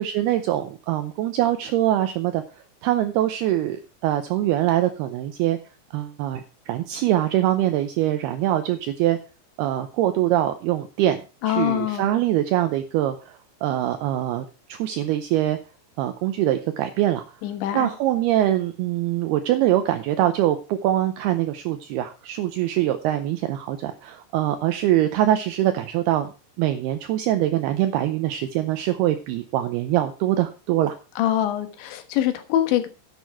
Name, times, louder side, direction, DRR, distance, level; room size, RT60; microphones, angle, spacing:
voice 1, 0.0-2.4 2.8-5.6 5.9-9.2 9.6-11.2 11.5-15.6 16.0-17.2 17.7-26.3 26.6-31.0, right 13 dB, 80° right, 8 dB, 2.3 m, -23 dB
voice 2, 11.4-12.1 17.4-17.9 31.2-32.9, left 11 dB, 80° left, 8 dB, 3.6 m, -24 dB
11.0 x 8.3 x 4.7 m, 0.32 s
omnidirectional pair, 5.3 m